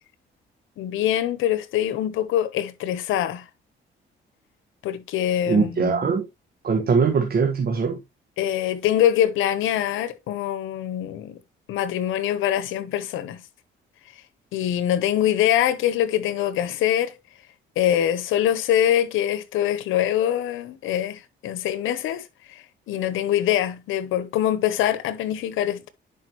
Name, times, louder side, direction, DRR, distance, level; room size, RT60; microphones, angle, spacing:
voice 1, 0.8-3.5 4.8-6.2 8.4-11.4 11.7-13.4 14.5-17.1 17.8-25.9, left 11 dB, 90° left, 1.0 m, -24 dB
voice 2, 5.5-6.2 6.6-8.0, right 5 dB, 50° right, 1.6 m, -21 dB
10.5 x 5.1 x 3.0 m
cardioid pair, 90°, 20 cm